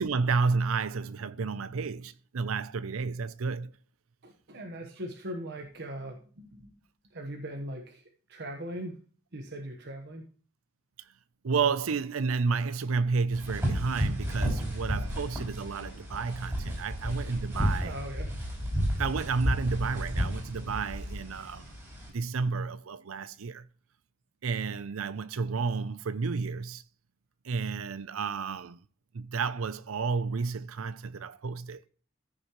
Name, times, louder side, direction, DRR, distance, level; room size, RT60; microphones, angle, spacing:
voice 1, 0.0-3.7 11.4-17.9 19.0-21.7 22.1-23.7 24.4-26.8 27.4-28.8 29.1-31.9, right 4 dB, 90° right, 0.6 m, -31 dB
voice 2, 4.2-6.7 7.1-8.0 8.3-9.0 9.3-10.2 17.8-18.3, right 1 dB, 55° right, 1.2 m, -40 dB
sound 1, 13.3-22.1, equal, 15° right, 5.6 m, -32 dB
14.5 x 6.7 x 3.1 m
head